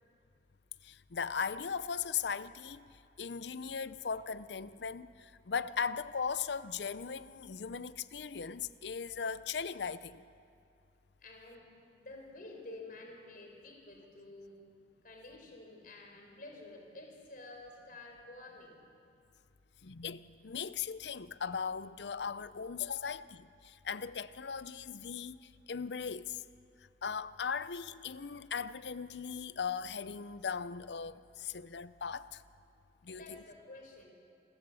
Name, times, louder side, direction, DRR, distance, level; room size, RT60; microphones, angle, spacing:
voice 1, 0.8-2.9 3.2-10.2 19.8-26.4 27.0-32.4 33.0-33.4, left 6 dB, 70° left, 0.6 m, -38 dB
voice 2, 11.2-11.6 11.9-14.7 15.0-18.8 33.1-34.1, left 2 dB, 55° left, 4.2 m, -50 dB
28.5 x 14.5 x 7.1 m
head